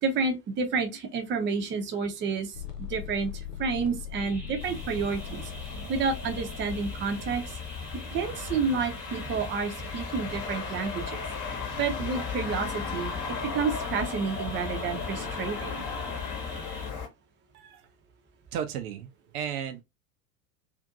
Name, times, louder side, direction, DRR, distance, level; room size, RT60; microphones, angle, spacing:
voice 1, 0.0-2.5 2.9-3.3 3.6-5.5 5.9-7.4 8.1-11.2 11.8-15.8, right 5 dB, 25° right, 0.6 m, -30 dB
sound 1, 2.5-8.5, left 10 dB, 70° left, 0.9 m, -41 dB
sound 2, 4.2-16.9, right 1 dB, 5° right, 0.9 m, -43 dB
sound 3, 4.6-17.1, left 5 dB, 40° left, 1.0 m, -36 dB
voice 2, 17.5-17.9 18.5-19.8, right 8 dB, 65° right, 0.6 m, -34 dB
2.5 x 2.5 x 2.4 m
figure-of-eight pair, 80°, 49 cm